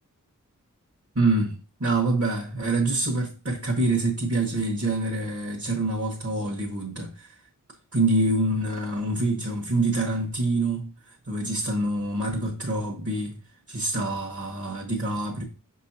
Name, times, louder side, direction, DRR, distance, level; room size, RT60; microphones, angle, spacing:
voice 1, 1.1-1.5 1.8-7.4 7.9-13.3 13.7-15.4, right 2 dB, 50° right, 1.4 m, -26 dB
6.1 x 5.4 x 2.9 m
wide cardioid pair, 45°, 32 cm